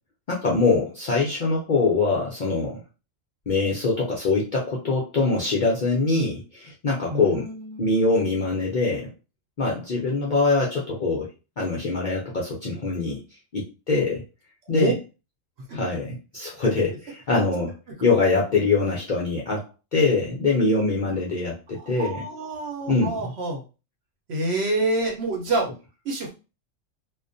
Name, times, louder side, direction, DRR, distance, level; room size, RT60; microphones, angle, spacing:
voice 1, 0.3-2.8 3.5-7.5 7.8-9.1 9.6-11.3 11.6-13.2 13.5-14.2 14.7-14.9 15.7-17.7 18.0-22.2 22.9-23.3, left 3 dB, 55° left, -4 dB, 0.5 m, -23 dB
voice 2, 7.1-8.1 14.7-14.9 21.7-23.6 24.3-25.7 26.0-26.3, right 2 dB, 60° right, 1 dB, 0.9 m, -27 dB
2.3 x 2.1 x 2.5 m, 0.30 s
omnidirectional pair, 1.4 m